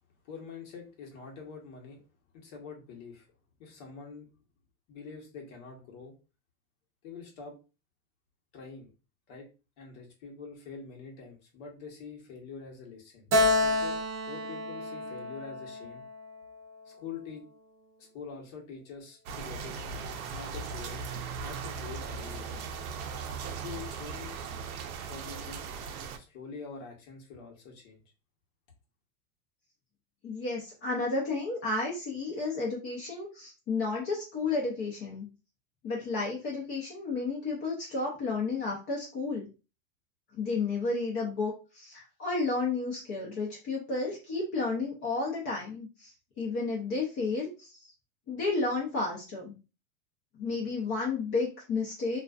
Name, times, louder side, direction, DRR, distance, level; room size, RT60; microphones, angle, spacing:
voice 1, 0.2-2.0 2.3-3.3 3.6-4.2 4.9-6.1 7.0-7.6 8.5-8.9 9.3-9.5 9.8-13.3 13.6-14.0 14.3-16.0 16.9-17.4 18.0-20.0 20.3-21.0 21.4-22.6 23.4-24.4 25.0-25.7 26.2-28.0, left 5 dB, 55° left, 0 dB, 1.1 m, -45 dB
Keyboard (musical), 13.3-16.8, left 2 dB, 30° right, 0.5 m, -29 dB
sound 1, 19.3-26.2, right 5 dB, 85° right, 0.6 m, -38 dB
voice 2, 30.2-35.3 35.8-39.5 40.3-47.9 48.3-49.5 50.3-52.2, left 3 dB, 35° left, -3 dB, 0.6 m, -32 dB
2.4 x 2.3 x 2.3 m, 0.32 s
supercardioid pair, 130°, 42 cm